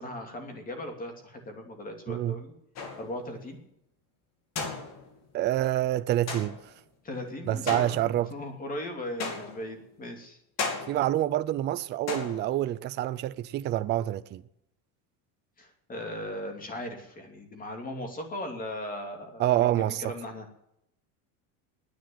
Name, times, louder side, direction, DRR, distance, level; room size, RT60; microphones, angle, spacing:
voice 1, 0.0-2.5 3.0-3.6 7.0-10.4 15.6-20.5, left 1 dB, 20° left, 2.7 m, -38 dB
voice 2, 2.1-2.4 5.3-6.6 7.5-8.3 10.9-14.4 19.4-20.1, right 13 dB, 25° right, 0.4 m, -27 dB
sound 1, 2.7-3.3 4.6-5.3 6.3-6.8 7.7-8.4 9.2-9.8 10.6-11.2 12.1-12.7, left 4 dB, 40° left, 2.7 m, -35 dB
10.5 x 9.2 x 9.9 m
cardioid pair, 160°, 41 cm